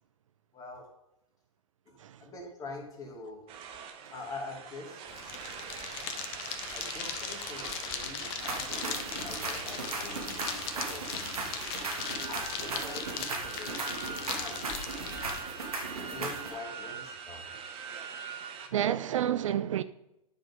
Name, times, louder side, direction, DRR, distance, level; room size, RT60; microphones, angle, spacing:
voice 1, 0.5-0.9 1.9-3.4 4.1-5.1 6.7-11.1 11.9-14.6 16.1-17.5, left 2 dB, 20° left, 2.4 m, -44 dB
sound 1, 3.5-18.7, right 7 dB, 30° right, 1.2 m, -42 dB
sound 2, 5.1-15.4, left 7 dB, 40° left, 1.1 m, -39 dB
sound 3, 8.4-16.5, right 3 dB, 75° right, 2.5 m, -38 dB
voice 2, 18.7-19.8, right 10 dB, 60° right, 0.4 m, -30 dB
10.0 x 5.4 x 5.3 m
figure-of-eight pair, 110°, 19 cm